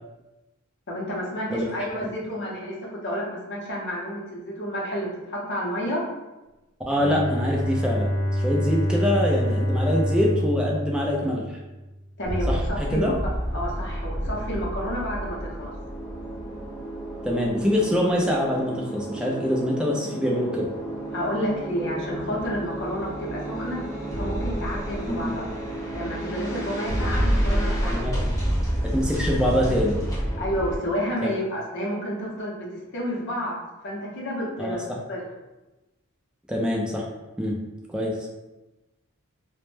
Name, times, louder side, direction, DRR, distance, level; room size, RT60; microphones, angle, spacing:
voice 1, 0.9-6.0 12.2-15.7 21.1-23.8 24.1-25.5 25.9-28.2 30.4-33.6 33.8-34.8 35.1-35.2, equal, 55° left, -4 dB, 0.6 m, -30 dB
voice 2, 6.9-8.1 8.4-11.6 12.5-13.1 17.2-20.7 25.1-25.3 27.8-28.2 28.9-30.0 31.2-31.3 34.6-34.8 36.5-37.0 37.4-37.6 37.9-38.3, equal, 5° right, -3 dB, 0.3 m, -24 dB
Bowed string instrument, 6.9-11.9, equal, 90° right, 0.6 m, -26 dB
sound 1, 12.2-30.8, right 1 dB, 15° left, 0.7 m, -29 dB
2.1 x 2.0 x 3.1 m, 1.1 s
head